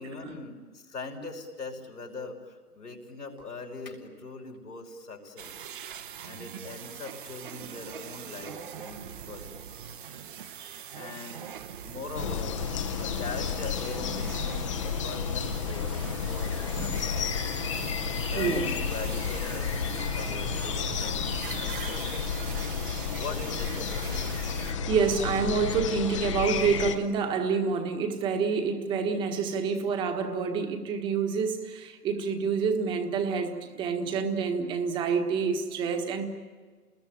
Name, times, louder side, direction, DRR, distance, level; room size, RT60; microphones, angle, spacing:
voice 1, 0.0-5.5 6.3-9.7 10.7-12.6 13.0-17.7 18.2-21.2 21.6-22.4 23.1-24.2, left 3 dB, 85° left, 1 dB, 5.7 m, -41 dB
sound 1, 5.4-24.7, right 8 dB, 35° right, 1.0 m, -42 dB
voice 2, 10.5-11.0 16.8-17.0 18.3-18.7 24.6-36.3, right 5 dB, 10° right, 6 dB, 1.4 m, -28 dB
sound 2, 12.1-27.0, left 6 dB, 20° left, 0.9 m, -31 dB
28.0 x 21.0 x 9.0 m, 1.5 s
hypercardioid pair, 150°, 45 cm